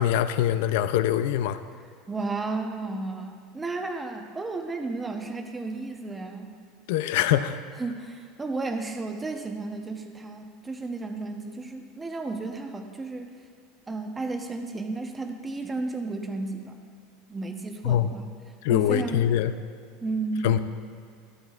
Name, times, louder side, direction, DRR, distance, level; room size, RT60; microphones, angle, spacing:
voice 1, 0.0-1.6 6.9-7.6 17.8-18.1 18.6-19.5 20.4-20.6, left 11 dB, 70° left, 12 dB, 0.4 m, -23 dB
voice 2, 2.1-6.5 7.8-13.3 13.9-16.8 17.3-18.3 18.7-19.3 20.0-20.6, right 3 dB, 15° right, 4 dB, 0.8 m, -33 dB
13.0 x 12.0 x 2.4 m, 2.2 s
supercardioid pair, 145°, 0 cm